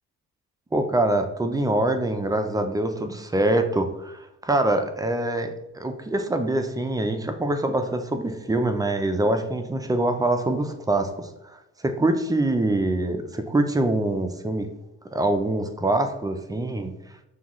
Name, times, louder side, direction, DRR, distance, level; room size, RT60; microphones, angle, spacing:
voice 1, 0.7-14.7 15.1-16.9, right 1 dB, 10° right, 7 dB, 0.4 m, -24 dB
5.6 x 2.4 x 3.0 m, 0.90 s
cardioid pair, 90°, 30 cm